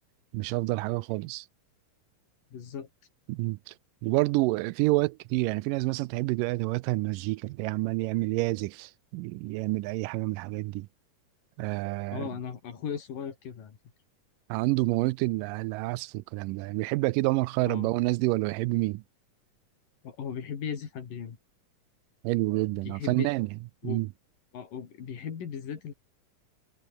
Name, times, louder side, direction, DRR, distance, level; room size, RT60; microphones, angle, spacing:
voice 1, 0.3-1.5 3.3-3.7 4.0-10.9 11.6-12.3 14.5-19.0 22.2-23.5 23.8-24.1, right 21 dB, 90° right, 2.3 m, -28 dB
voice 2, 2.5-2.9 12.1-13.8 17.6-17.9 20.0-21.4 22.8-23.3 23.8-24.0 24.5-25.9, left 7 dB, 85° left, 4.7 m, -37 dB
omnidirectional pair, 3.8 m